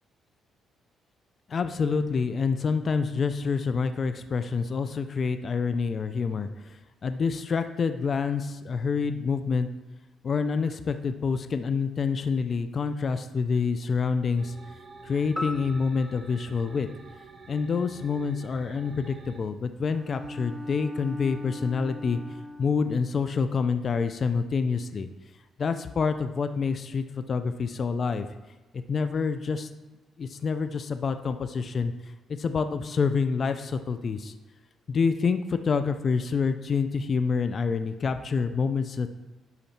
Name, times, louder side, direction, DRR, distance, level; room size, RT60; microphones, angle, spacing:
voice 1, 1.5-6.8 7.0-9.7 10.2-14.5 15.0-16.9 17.5-22.2 22.6-25.1 25.6-28.3 28.7-29.7 30.2-31.9 32.3-34.3 34.9-39.1, left 5 dB, 45° left, 9 dB, 0.6 m, -27 dB
sound 1, 14.4-19.4, right 3 dB, 40° right, 1.1 m, -48 dB
sound 2, 15.4-17.8, left 1 dB, 15° left, 1.4 m, -40 dB
Bowed string instrument, 19.8-22.9, equal, 20° right, 1.1 m, -40 dB
10.5 x 4.1 x 5.9 m, 1.2 s
cardioid pair, 90°, 0 cm